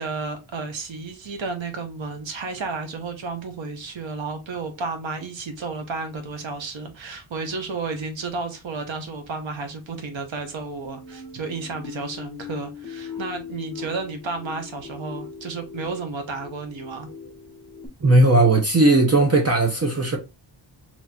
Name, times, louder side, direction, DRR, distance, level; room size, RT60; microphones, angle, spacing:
voice 1, 0.0-17.1, right 4 dB, 70° right, 1.0 m, -32 dB
sound 1, 10.8-17.9, left 6 dB, 5° left, 0.9 m, -39 dB
voice 2, 18.0-20.2, right 2 dB, 30° right, 0.6 m, -17 dB
4.2 x 2.9 x 2.3 m
wide cardioid pair, 150°, 48 cm